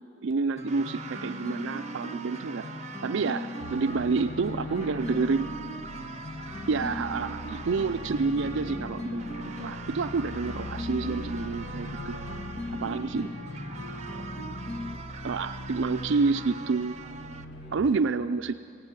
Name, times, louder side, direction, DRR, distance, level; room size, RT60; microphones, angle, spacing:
voice 1, 0.2-2.7 3.0-3.5 3.7-5.5 6.7-12.2 12.7-13.3 14.1-14.2 15.2-17.0 17.7-18.5, right 4 dB, 65° right, 9 dB, 0.4 m, -28 dB
sound 1, 0.6-15.0, left 1 dB, 35° left, 1.5 m, -39 dB
sound 2, 0.7-17.5, right 6 dB, 35° right, 0.8 m, -44 dB
sound 3, 3.6-17.8, left 2 dB, 55° left, 1.1 m, -42 dB
voice 2, 3.6-5.2 5.9-6.4 9.1-9.8 17.0-18.2, equal, 5° right, 0 dB, 4.4 m, -51 dB
17.5 x 16.0 x 9.6 m, 2.8 s
head